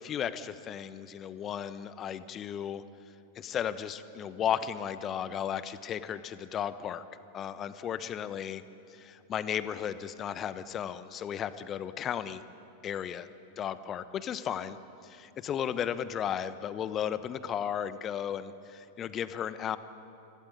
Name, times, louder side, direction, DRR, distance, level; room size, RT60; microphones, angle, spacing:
voice 1, 0.0-2.8 3.3-7.0 7.3-8.6 8.9-12.4 12.8-13.3 13.6-14.8 15.0-19.8, left 9 dB, 30° left, 14 dB, 1.0 m, -34 dB
25.5 x 17.0 x 9.7 m, 2.8 s
figure-of-eight pair, 90°, 0 cm